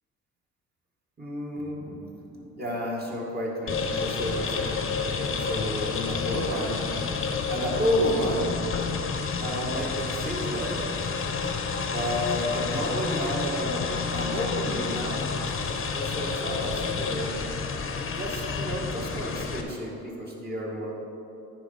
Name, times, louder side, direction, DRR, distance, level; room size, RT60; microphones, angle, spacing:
voice 1, 1.2-4.8 5.1-6.8 7.5-8.5 9.4-10.9 11.9-15.3 15.8-17.5 17.8-20.9, equal, 30° right, -3 dB, 1.8 m, -31 dB
sound 1, 3.7-19.6, left 5 dB, 45° left, 0.9 m, -30 dB
9.7 x 4.5 x 5.5 m, 2.8 s
cardioid pair, 90°, 30 cm